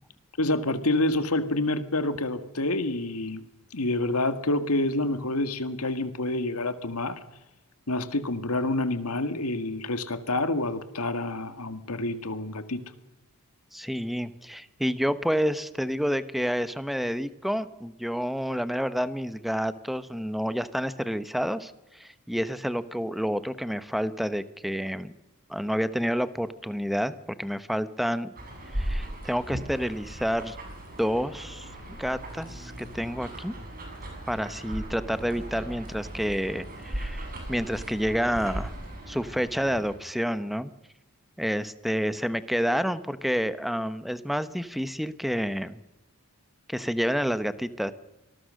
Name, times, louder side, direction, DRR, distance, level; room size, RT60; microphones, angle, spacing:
voice 1, 0.4-3.4 3.7-7.2 7.9-12.8, left 2 dB, 75° left, 10 dB, 1.9 m, -28 dB
voice 2, 13.7-25.1 25.5-28.3 28.7-30.6 31.0-33.5 34.3-38.7 39.1-40.7 41.4-45.8 46.7-47.9, equal, ahead, 13 dB, 1.0 m, -29 dB
sound 1, 28.4-40.0, right 1 dB, 40° right, 7.1 m, -38 dB
26.5 x 19.5 x 6.5 m, 0.96 s
head